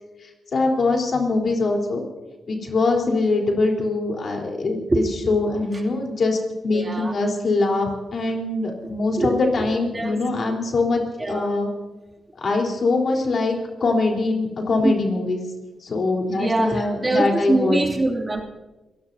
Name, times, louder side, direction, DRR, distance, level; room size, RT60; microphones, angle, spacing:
voice 1, 0.2-2.0 2.5-11.0 11.3-11.7 12.4-15.4 15.8-17.8, left 3 dB, 60° left, 1 dB, 3.8 m, -23 dB
voice 2, 6.7-7.1 9.2-9.7 9.9-10.6 11.2-11.5 14.8-14.9 16.4-18.4, right 2 dB, 25° right, 0 dB, 2.6 m, -24 dB
29.5 x 17.0 x 2.8 m, 1.1 s
cardioid pair, 70°, 0 cm